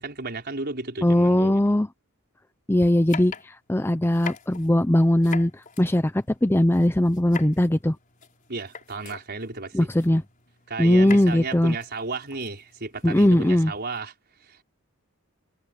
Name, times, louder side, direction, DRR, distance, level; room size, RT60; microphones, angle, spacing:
voice 1, 0.0-1.6 8.5-9.9 10.7-14.1 14.4-14.6, right 3 dB, 50° right, 5.2 m, -33 dB
voice 2, 1.0-1.9 2.7-3.3 3.7-5.5 5.8-8.0 9.7-10.2 10.8-11.8 13.0-13.7, left 1 dB, 10° left, 0.6 m, -20 dB
sound 1, 3.1-14.0, left 6 dB, 40° left, 5.4 m, -43 dB
head